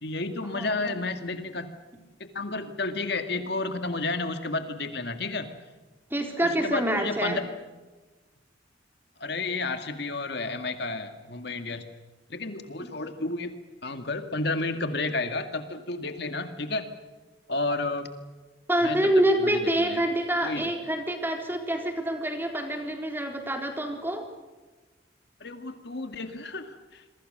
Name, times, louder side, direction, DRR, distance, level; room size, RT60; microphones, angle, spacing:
voice 1, 0.0-1.7 2.3-5.5 6.4-7.4 9.2-11.8 12.3-13.5 13.8-16.9 17.5-18.1 18.8-19.1 19.5-20.0 20.4-20.7 25.4-27.0, left 3 dB, 60° left, 8 dB, 2.0 m, -31 dB
voice 2, 0.5-0.9 6.1-7.4 12.8-12.9 18.7-24.2, right 1 dB, 10° right, 3 dB, 4.1 m, -26 dB
28.0 x 23.5 x 6.7 m, 1.2 s
head